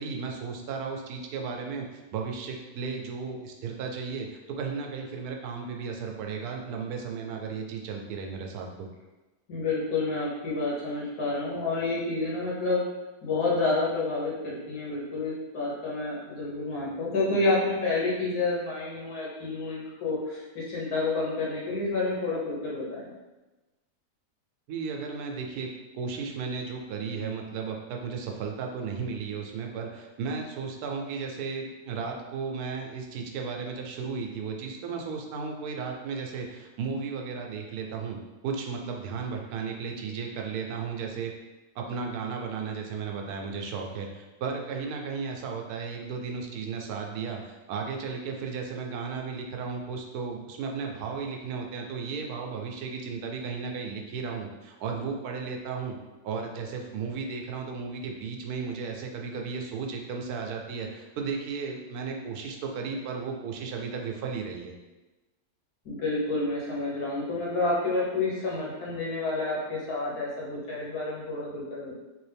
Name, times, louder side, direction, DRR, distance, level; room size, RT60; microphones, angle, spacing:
voice 1, 0.0-8.9 24.7-25.7 25.9-38.2 38.4-41.3 41.8-56.0 56.2-64.7, right 5 dB, 80° right, 2 dB, 1.1 m, -34 dB
voice 2, 9.5-12.8 13.2-23.0 65.8-72.0, left 3 dB, 80° left, -5 dB, 1.6 m, -29 dB
3.4 x 2.6 x 3.3 m, 1.1 s
omnidirectional pair, 1.6 m